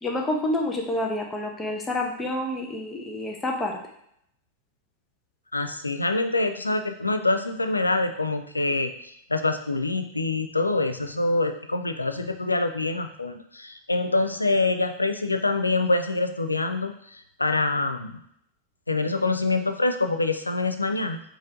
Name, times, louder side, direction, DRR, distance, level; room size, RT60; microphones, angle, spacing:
voice 1, 0.0-3.7, left 1 dB, 15° left, 1 dB, 0.8 m, -28 dB
voice 2, 5.5-8.9 9.3-18.2 18.9-21.2, left 2 dB, 80° left, 7 dB, 0.3 m, -25 dB
4.2 x 2.5 x 3.7 m, 0.71 s
figure-of-eight pair, 90°, 0 cm